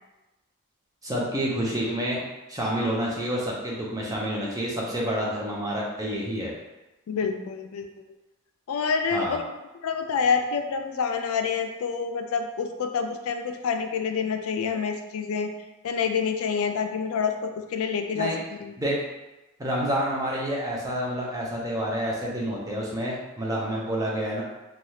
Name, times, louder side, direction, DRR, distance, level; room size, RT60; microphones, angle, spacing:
voice 1, 1.0-2.2 2.5-6.5 9.1-9.4 18.1-18.4 18.8-19.0 19.6-24.4, equal, 15° right, -4 dB, 0.6 m, -28 dB
voice 2, 7.1-7.9 8.7-9.4 9.8-15.5 15.8-18.3 18.6-18.7, left 6 dB, 65° left, 6 dB, 0.3 m, -27 dB
3.2 x 2.3 x 2.7 m, 1.1 s
head